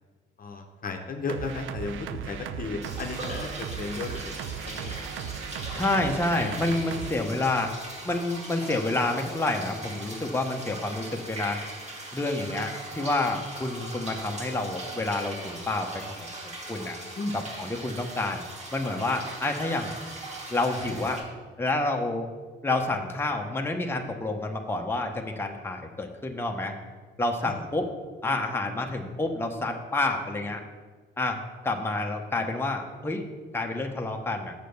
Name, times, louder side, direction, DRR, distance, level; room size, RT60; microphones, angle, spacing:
voice 1, 0.4-4.3 4.6-5.0 17.2-17.4 27.4-27.6, left 4 dB, 45° left, 4 dB, 0.9 m, -34 dB
sound 1, 1.3-7.1, right 8 dB, 85° right, 0.5 m, -36 dB
sound 2, 2.8-21.2, right 2 dB, 35° right, 2.0 m, -40 dB
voice 2, 5.7-7.7 8.0-11.6 12.1-16.0 16.4-17.0 17.6-18.4 18.7-20.0 20.5-21.2 21.6-22.3 22.6-26.7 27.2-27.9 28.2-30.6 31.2-33.2 33.5-34.5, left 2 dB, 10° left, 2 dB, 0.9 m, -28 dB
sound 3, 18.9-21.3, right 1 dB, 70° right, 2.7 m, -47 dB
6.8 x 5.0 x 6.5 m, 1.4 s
cardioid pair, 90°, 20 cm